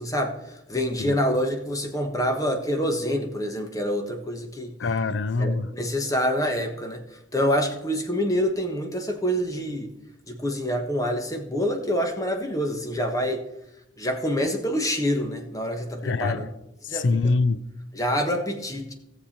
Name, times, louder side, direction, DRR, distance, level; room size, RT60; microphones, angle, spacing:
voice 1, 0.0-4.7 5.4-7.0 7.3-9.9 10.3-13.4 14.0-16.5 16.9-17.0 17.9-18.9, equal, 20° left, 1.3 m, -26 dB
voice 2, 4.8-5.7 16.0-16.5 16.9-17.6, left 3 dB, 75° left, 0.5 m, -24 dB
17.0 x 7.0 x 4.3 m
head